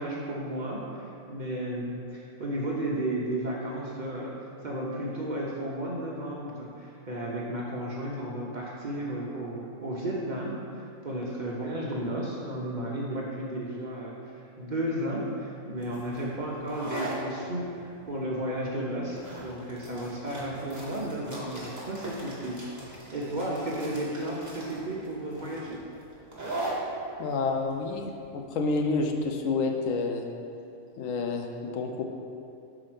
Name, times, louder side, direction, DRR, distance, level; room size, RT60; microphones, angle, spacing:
voice 1, 0.0-4.3 4.6-14.1 14.6-25.8, right 1 dB, 45° right, -4 dB, 0.7 m, -33 dB
sound 1, 15.8-29.2, right 2 dB, 15° right, 1.2 m, -40 dB
voice 2, 27.2-30.2 31.0-32.0, left 3 dB, 75° left, 3 dB, 1.0 m, -29 dB
4.9 x 4.3 x 6.0 m, 2.7 s
omnidirectional pair, 1.4 m